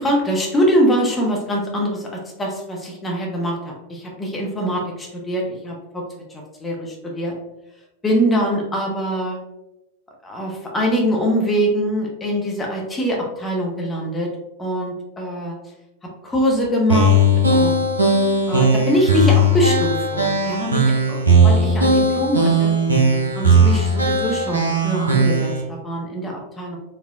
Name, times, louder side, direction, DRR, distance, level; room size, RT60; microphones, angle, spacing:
voice 1, 0.0-6.0 6.3-7.3 8.0-9.4 10.2-14.3 14.6-15.6 16.2-17.2 17.5-17.8 18.5-22.7 23.3-26.8, equal, 15° left, -1 dB, 0.6 m, -23 dB
sound 1, 16.9-25.6, right 1 dB, 80° right, 0.5 m, -17 dB
4.3 x 2.1 x 2.3 m, 0.94 s
figure-of-eight pair, 90°, 0 cm